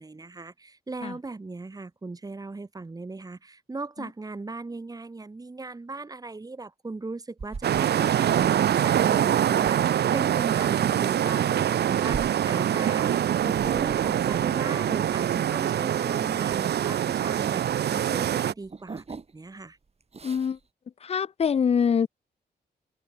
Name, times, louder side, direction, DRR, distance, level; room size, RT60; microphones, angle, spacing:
voice 1, 0.0-13.2 13.4-19.8, right 3 dB, 20° right, 1.4 m, -38 dB
sound 1, 7.4-17.8 18.0-19.6 19.9-20.6, right 4 dB, 35° right, 6.4 m, -43 dB
sound 2, 7.6-18.5, right 10 dB, 75° right, 0.6 m, -24 dB
voice 2, 20.2-20.6 21.1-22.1, left 7 dB, 40° left, 0.4 m, -24 dB
wide cardioid pair, 125°, 17 cm